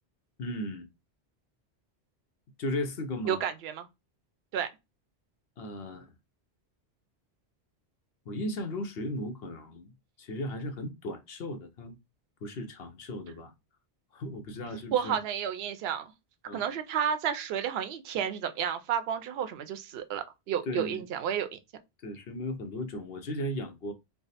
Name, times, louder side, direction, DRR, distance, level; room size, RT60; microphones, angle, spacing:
voice 1, 0.4-0.9 2.6-3.4 5.6-6.1 8.3-9.9 10.2-12.0 12.4-13.5 14.1-15.2 16.5-16.7 18.1-18.2 20.7-21.0 22.0-23.9, left 1 dB, 65° left, 0.9 m, -36 dB
voice 2, 3.3-3.9 4.5-4.7 14.9-16.1 16.5-21.6, right 8 dB, 70° right, 0.8 m, -31 dB
3.4 x 2.0 x 4.0 m
omnidirectional pair, 1.1 m